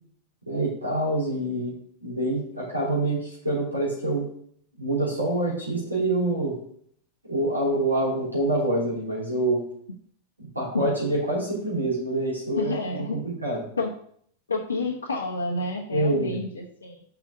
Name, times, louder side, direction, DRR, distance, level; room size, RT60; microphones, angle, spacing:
voice 1, 0.5-1.7 2.0-4.3 4.8-6.6 7.2-9.6 10.4-13.6 15.9-16.4, right 1 dB, 85° right, -5 dB, 3.3 m, -26 dB
voice 2, 12.6-13.2 13.8-13.9 14.5-17.0, left 2 dB, 75° left, -2 dB, 1.0 m, -29 dB
5.9 x 5.6 x 6.4 m, 0.64 s
figure-of-eight pair, 90°, 0 cm